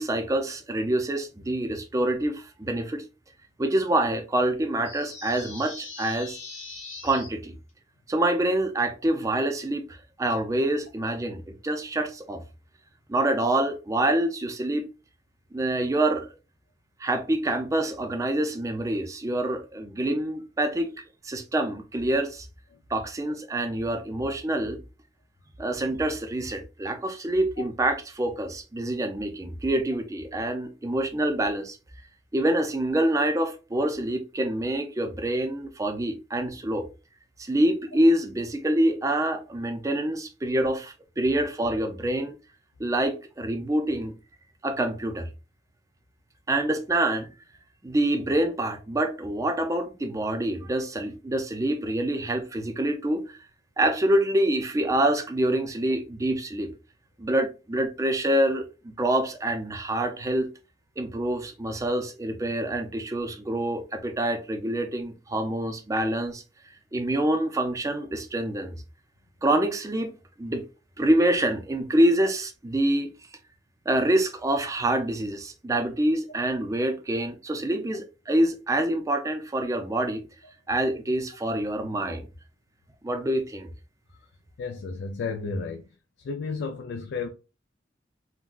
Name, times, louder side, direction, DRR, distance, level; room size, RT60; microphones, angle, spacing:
voice 1, 0.0-3.0 3.6-6.4 7.0-7.6 8.1-12.4 13.1-14.9 15.5-16.3 17.0-20.9 21.2-22.5 22.9-24.8 25.6-31.8 32.3-36.8 37.4-42.4 42.8-44.1 44.6-45.3 46.5-47.3 47.8-53.2 53.8-56.7 57.2-60.5 61.0-66.4 66.9-68.8 69.4-70.1 70.4-70.6 71.0-73.2 73.9-80.2 80.7-82.3 83.0-83.7, right 1 dB, 20° right, 0.4 m, -26 dB
sound 1, 4.8-7.3, left 3 dB, 40° left, 1.0 m, -41 dB
voice 2, 84.6-85.8 86.2-87.3, left 4 dB, 70° left, 0.4 m, -32 dB
3.6 x 2.1 x 2.3 m
head